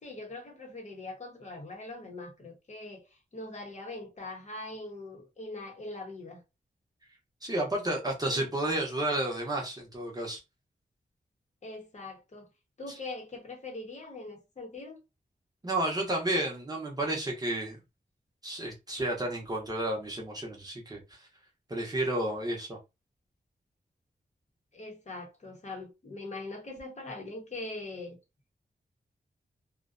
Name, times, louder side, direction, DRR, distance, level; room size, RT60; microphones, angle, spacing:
voice 1, 0.0-3.1 3.3-6.4 8.3-8.5 11.6-12.5 12.8-15.0 24.7-28.2, left 2 dB, 40° left, 0.8 m, -42 dB
voice 2, 7.4-10.4 15.6-17.8 18.4-21.2 21.7-22.8, right 1 dB, 20° right, 0.7 m, -31 dB
2.4 x 2.1 x 2.4 m
wide cardioid pair, 160°, 17 cm